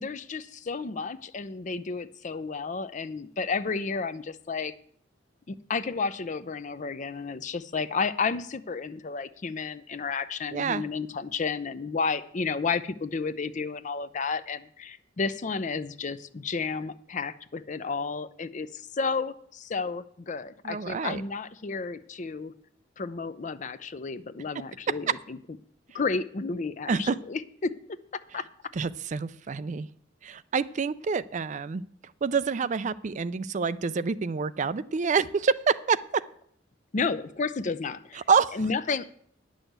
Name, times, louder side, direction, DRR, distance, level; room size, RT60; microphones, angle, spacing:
voice 1, 0.0-4.7 5.5-22.5 23.0-25.4 25.9-28.7 36.9-38.2 38.5-39.2, left 4 dB, 40° left, 13 dB, 0.5 m, -32 dB
voice 2, 10.5-10.8 20.7-21.2 26.9-27.1 28.8-29.9 30.2-31.8 32.2-36.0 38.3-38.5, right 5 dB, 40° right, 15 dB, 0.4 m, -27 dB
9.9 x 6.3 x 7.9 m, 0.62 s
head